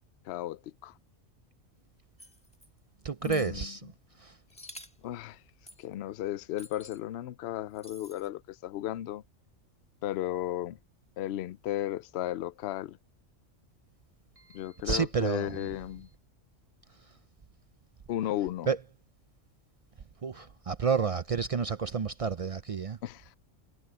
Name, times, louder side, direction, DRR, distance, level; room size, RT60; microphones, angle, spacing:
voice 1, 0.2-0.9 3.2-3.7 5.0-5.4 5.8-9.2 10.0-10.8 11.2-13.0 14.5-16.1 18.1-18.7 23.0-23.4, left 13 dB, 65° left, 0.7 m, -35 dB
sound 1, 2.2-2.7 3.2-3.5 4.5-5.0 5.7-5.9 6.6-7.0 7.8-8.3, left 1 dB, 5° left, 1.6 m, -50 dB
voice 2, 3.0-3.8 4.2-4.3 14.9-15.6 18.7-18.8 20.2-23.0, right 6 dB, 55° right, 0.3 m, -30 dB
omnidirectional pair, 1.3 m